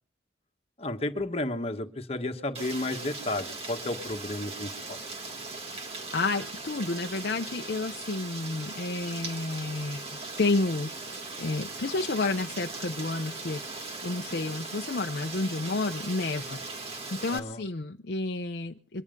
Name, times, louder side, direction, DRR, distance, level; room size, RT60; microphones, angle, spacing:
voice 1, 0.8-5.0 17.3-17.6, left 2 dB, 35° left, 5 dB, 1.5 m, -32 dB
Rain, 2.5-17.4, right 3 dB, 35° right, 1.9 m, -39 dB
voice 2, 5.7-10.1 10.4-13.6 14.0-19.0, left 3 dB, 55° left, 3 dB, 0.7 m, -31 dB
23.0 x 9.8 x 5.3 m, 0.42 s
head